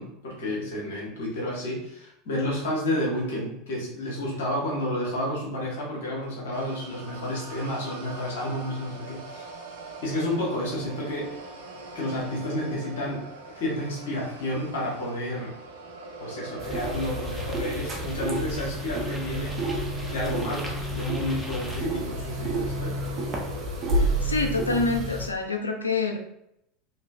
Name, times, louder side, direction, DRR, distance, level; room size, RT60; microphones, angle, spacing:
voice 1, 0.0-9.5 10.0-11.5 11.9-13.2 13.5-15.5 16.2-19.5 20.1-22.9, left 1 dB, 65° left, -4 dB, 1.2 m, -31 dB
sound 1, 6.5-24.8, right 2 dB, 70° right, 0.5 m, -42 dB
sound 2, 16.6-25.3, right 1 dB, 35° right, 0.8 m, -30 dB
sound 3, 16.7-21.8, equal, ahead, 0.7 m, -43 dB
voice 2, 23.9-26.2, left 3 dB, 85° left, 3 dB, 0.4 m, -27 dB
3.1 x 3.0 x 2.5 m, 0.79 s
figure-of-eight pair, 80°, 0 cm